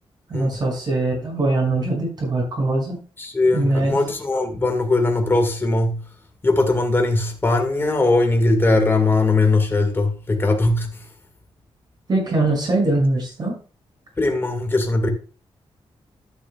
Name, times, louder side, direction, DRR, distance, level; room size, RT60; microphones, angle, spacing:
voice 1, 0.3-3.0 3.5-4.0 12.1-13.6, right 2 dB, 45° right, 6.1 m, -22 dB
voice 2, 3.2-6.0 6.4-10.9 14.2-15.1, left 2 dB, 25° left, 1.8 m, -20 dB
12.5 x 9.7 x 2.3 m
wide cardioid pair, 155°, 10 cm